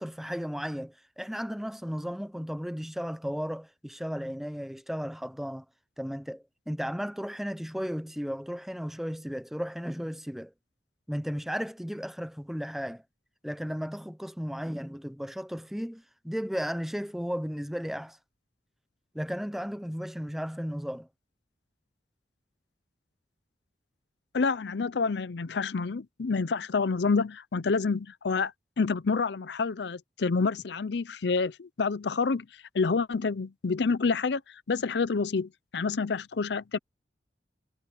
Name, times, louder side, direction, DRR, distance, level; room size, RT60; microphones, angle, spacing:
voice 1, 0.0-5.6 6.0-10.5 11.1-13.0 13.4-18.2 19.1-21.1, equal, ahead, 0.7 m, -35 dB
voice 2, 24.3-32.5 32.7-34.4 34.7-36.8, left 4 dB, 65° left, 0.6 m, -28 dB
head